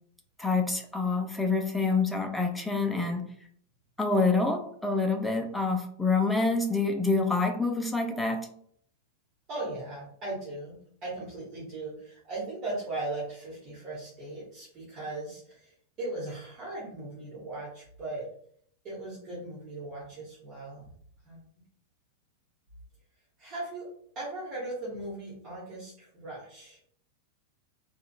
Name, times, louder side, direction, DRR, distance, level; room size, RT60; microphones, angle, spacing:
voice 1, 0.4-3.2 4.0-8.4, left 3 dB, 5° left, 4 dB, 0.5 m, -27 dB
voice 2, 9.5-18.3 18.8-20.8 21.2-21.4 23.4-23.9 24.1-26.8, right 2 dB, 30° right, -7 dB, 1.2 m, -38 dB
3.6 x 2.3 x 2.2 m, 0.63 s
figure-of-eight pair, 90°, 0 cm